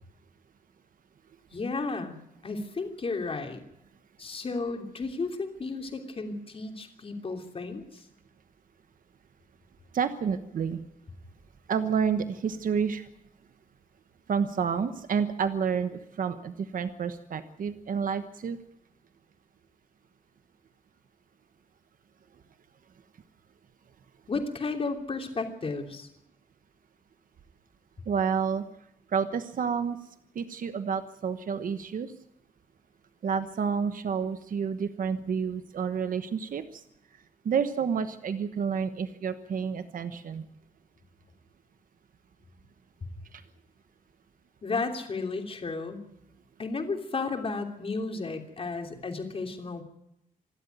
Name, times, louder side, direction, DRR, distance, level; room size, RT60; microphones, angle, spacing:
voice 1, 1.5-2.1 2.4-3.6 4.2-8.0 24.3-26.1 44.6-46.0 46.6-49.8, left 3 dB, 40° left, 5 dB, 3.1 m, -33 dB
voice 2, 9.9-10.8 11.7-13.1 14.3-18.6 28.1-28.6 29.1-30.0 30.3-32.1 33.2-36.8 37.4-40.4 43.3-43.4, right 6 dB, 75° right, 10 dB, 1.2 m, -29 dB
27.0 x 12.0 x 9.2 m, 0.80 s
wide cardioid pair, 160°, 14 cm